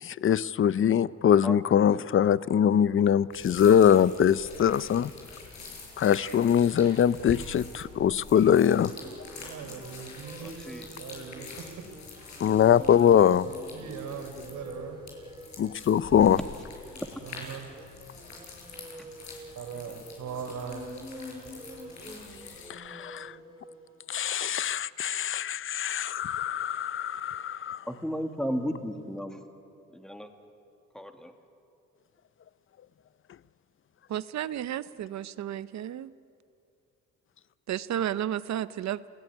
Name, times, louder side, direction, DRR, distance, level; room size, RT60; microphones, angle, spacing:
voice 1, 0.0-5.1 6.0-8.9 12.4-13.5 15.6-16.4 22.7-23.3 24.1-27.8, left 9 dB, 45° left, 18 dB, 0.7 m, -23 dB
sound 1, 3.3-22.7, left 4 dB, 65° left, 6.9 m, -46 dB
sound 2, 7.3-23.9, equal, 15° right, 4.8 m, -47 dB
voice 2, 9.4-10.6 11.0-11.6 13.4-15.0 17.2-17.7 19.6-20.9, right 6 dB, 80° right, 5 dB, 4.2 m, -40 dB
voice 3, 10.4-10.9 19.0-19.1 27.9-29.4 29.9-30.3 30.9-31.3, equal, ahead, 5 dB, 2.4 m, -34 dB
voice 4, 34.1-36.0 37.7-39.0, right 11 dB, 65° right, 15 dB, 0.9 m, -32 dB
29.0 x 17.5 x 9.9 m, 2.6 s
cardioid pair, 90°, 30 cm